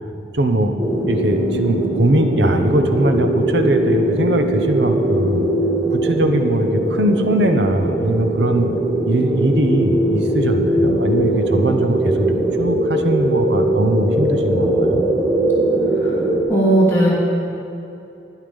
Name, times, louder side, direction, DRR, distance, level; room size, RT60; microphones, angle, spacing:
voice 1, 0.3-0.8 1.1-5.5 5.9-8.7 9.1-15.0, right 1 dB, 75° right, 6 dB, 0.9 m, -20 dB
sound 1, 0.8-16.4, right 1 dB, 15° right, 1.6 m, -20 dB
voice 2, 16.5-17.1, right 1 dB, 15° left, -8 dB, 2.9 m, -15 dB
12.0 x 9.6 x 5.4 m, 2.7 s
head